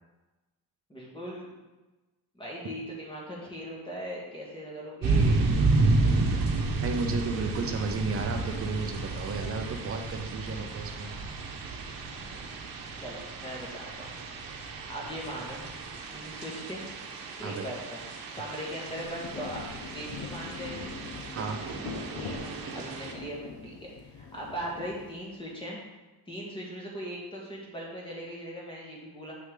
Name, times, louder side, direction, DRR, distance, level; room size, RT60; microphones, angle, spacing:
voice 1, 0.9-1.5 2.4-5.6 13.0-14.1 14.9-15.6 16.1-16.8 17.4-18.1 18.3-20.9 22.2-22.4 22.7-25.8 26.3-29.3, equal, 15° left, -4 dB, 1.8 m, -39 dB
sound 1, 5.0-23.1, right 3 dB, 60° right, 1.1 m, -31 dB
voice 2, 6.8-11.1 17.4-17.7 21.3-21.6, right 4 dB, 35° right, 4 dB, 0.7 m, -33 dB
Rain, 18.3-25.5, left 5 dB, 65° left, 1.1 m, -43 dB
7.9 x 6.2 x 3.8 m, 1.1 s
cardioid pair, 180°, 38 cm